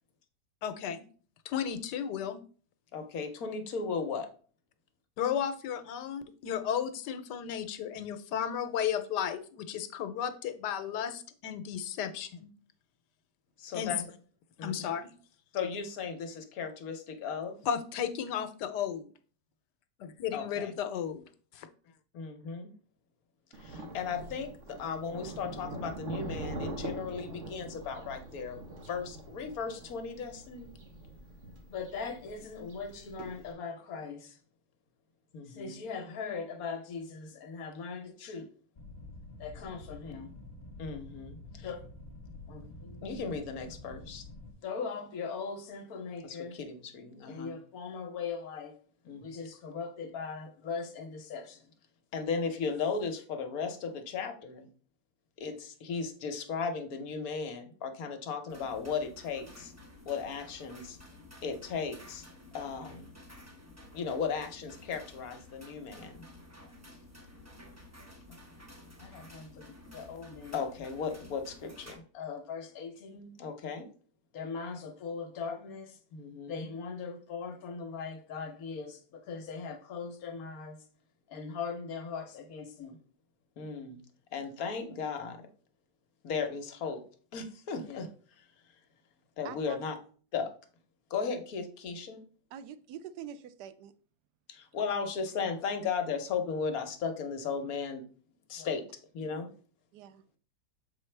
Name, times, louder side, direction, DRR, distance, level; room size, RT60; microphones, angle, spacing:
voice 1, 0.6-1.0 1.4-2.4 5.2-12.5 13.7-13.9 14.6-15.1 17.7-19.1 20.0-21.2 21.5-21.7, left 8 dB, 85° left, 10 dB, 1.3 m, -34 dB
voice 2, 2.9-4.3 13.6-14.0 14.6-14.8 15.5-17.6 20.3-20.7 22.1-22.7 23.5-30.7 31.7-34.4 35.3-38.5 39.4-40.3 40.8-41.8 42.5-44.2 44.6-48.8 49.0-51.6 52.1-54.7 55.4-59.7 60.1-61.0 61.4-62.3 62.5-63.2 63.9-66.1 68.3-68.4 69.0-73.9 74.3-80.8 81.3-83.0 83.6-84.0 84.3-85.4 86.2-87.0 87.3-88.1 88.4-88.5 89.4-90.0 90.3-90.5 91.1-92.2 94.5-98.1 98.5-98.8 99.1-99.5, left 5 dB, 65° left, 7 dB, 1.2 m, -37 dB
Thunder, 23.5-33.5, right 1 dB, 50° right, 1.3 m, -43 dB
sound 1, 38.8-44.5, left 2 dB, 35° left, 1.2 m, -48 dB
sound 2, 58.5-71.9, left 1 dB, 15° right, 0.6 m, -52 dB
voice 3, 89.4-89.8 92.5-93.9 99.9-100.2, right 9 dB, 80° right, 13 dB, 1.1 m, -45 dB
6.8 x 4.4 x 3.2 m, 0.42 s
omnidirectional pair, 1.8 m